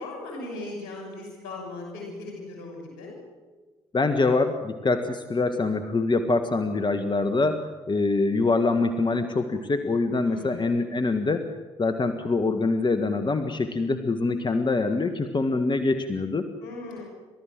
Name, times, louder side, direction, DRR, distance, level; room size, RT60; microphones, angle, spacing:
voice 1, 0.0-3.1 10.3-10.7 16.6-17.0, left 2 dB, 80° left, 2 dB, 6.7 m, -38 dB
voice 2, 3.9-7.6 7.9-11.5 11.8-16.5, left 3 dB, 35° left, 7 dB, 1.7 m, -24 dB
30.0 x 13.5 x 7.6 m, 1.3 s
hypercardioid pair, 45°, 14 cm